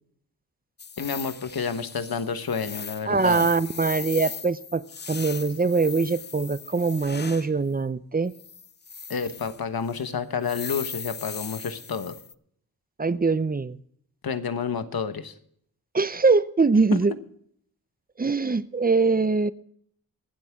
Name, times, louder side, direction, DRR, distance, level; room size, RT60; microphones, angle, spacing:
sound 1, 0.8-7.5 8.3-9.6 9.9-10.0 10.4-12.3, left 6 dB, 30° left, 0.4 m, -39 dB
voice 1, 1.0-3.5 9.1-12.2 14.2-15.3 16.9-17.0, left 6 dB, 75° left, 10 dB, 1.3 m, -29 dB
voice 2, 3.1-4.8 5.1-8.3 13.0-13.8 15.9-17.1 18.2-19.5, right 4 dB, 25° right, 15 dB, 0.6 m, -23 dB
25.0 x 8.3 x 3.6 m, 0.66 s
wide cardioid pair, 115°, 36 cm